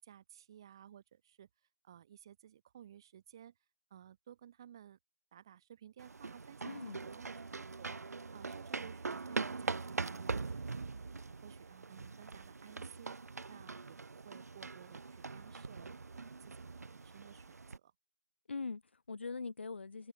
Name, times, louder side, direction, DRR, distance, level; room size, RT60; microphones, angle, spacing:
voice 1, 0.0-1.5 1.8-3.6 3.9-5.0 5.3-7.9 8.3-11.1 11.4-13.2 13.5-17.9, right 10 dB, 15° right, 0.9 m, -56 dB
sound 1, 6.0-17.8, right 4 dB, 75° right, 0.4 m, -42 dB
voice 2, 6.6-7.0 18.5-20.1, left 4 dB, 45° left, 0.6 m, -42 dB
figure-of-eight pair, 170°, 9 cm